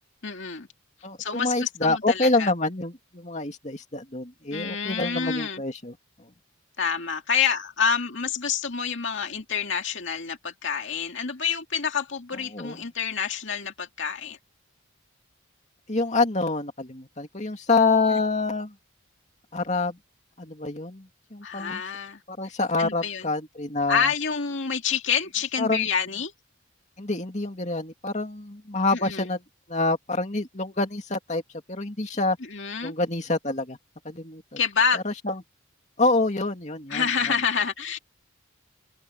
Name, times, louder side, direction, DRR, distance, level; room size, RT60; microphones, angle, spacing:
voice 1, 0.2-0.7 1.2-2.5 4.5-5.6 6.8-14.4 18.1-18.2 21.4-22.2 22.8-23.3 23.9-26.3 28.9-29.3 32.5-32.9 34.6-35.0 36.9-38.0, left 6 dB, 60° left, 2.3 m, -27 dB
voice 2, 1.0-5.9 12.5-12.8 15.9-18.7 19.5-20.0 20.4-21.8 22.3-24.1 25.6-25.9 27.0-29.4 29.7-31.4 31.7-32.4 32.8-33.8 34.0-34.6 34.9-35.4 36.0-37.4, left 3 dB, 35° left, 2.6 m, -26 dB
head